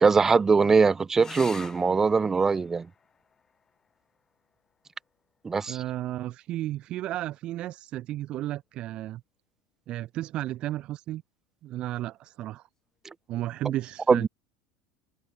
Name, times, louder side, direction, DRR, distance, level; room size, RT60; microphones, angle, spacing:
voice 1, 0.0-2.9 5.4-5.8 14.1-14.3, right 4 dB, 20° right, 0.5 m, -21 dB
sound 1, 1.2-6.2 8.1-8.7 12.2-12.3 12.6-12.7, left 6 dB, 25° left, 1.5 m, -49 dB
voice 2, 5.7-9.2 9.9-11.2 11.6-12.6 13.3-14.3, right 14 dB, 50° right, 0.9 m, -33 dB
hypercardioid pair, 85°, 2 cm